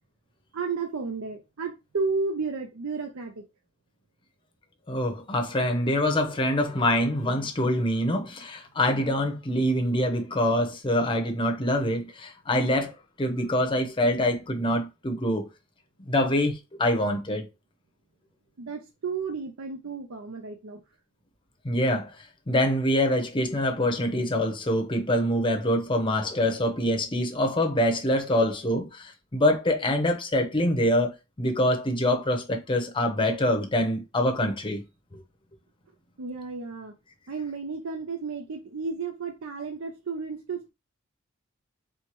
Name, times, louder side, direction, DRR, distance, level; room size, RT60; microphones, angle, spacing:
voice 1, 0.5-3.4 18.6-20.8 36.2-36.9 37.3-40.7, right 4 dB, 70° right, 0.6 m, -32 dB
voice 2, 4.9-12.9 13.2-15.5 16.0-17.5 21.6-22.1 22.5-34.8, left 1 dB, 25° left, 0.7 m, -25 dB
4.5 x 2.2 x 3.0 m
head